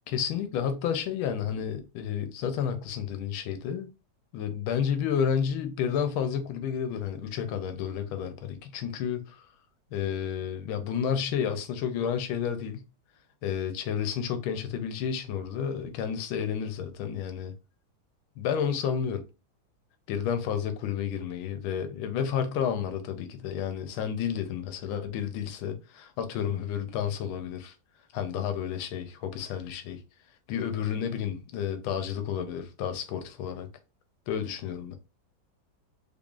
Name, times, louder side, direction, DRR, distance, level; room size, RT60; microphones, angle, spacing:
voice 1, 0.1-3.9 4.3-9.4 9.9-12.8 13.4-17.5 18.4-19.2 20.1-27.7 28.1-30.0 30.5-33.7 34.3-35.0, left 8 dB, 90° left, 1.5 m, -31 dB
3.8 x 3.3 x 2.4 m
omnidirectional pair, 2.2 m